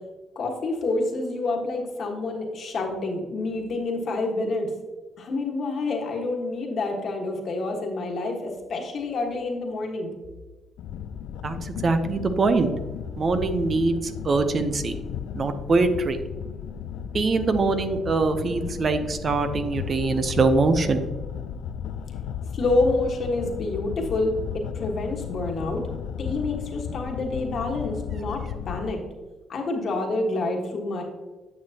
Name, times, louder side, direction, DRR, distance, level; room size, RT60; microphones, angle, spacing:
voice 1, 0.3-4.7 5.2-10.1 22.5-25.9 26.2-29.0 29.5-31.0, left 2 dB, 55° left, 2 dB, 1.5 m, -28 dB
sound 1, 10.8-28.9, left 8 dB, 85° left, 0.3 m, -34 dB
voice 2, 11.4-12.7 13.2-14.9 15.3-16.2 17.1-21.1, right 3 dB, 45° right, 9 dB, 0.7 m, -23 dB
9.3 x 6.3 x 2.9 m, 1.3 s
cardioid pair, 90°, 0 cm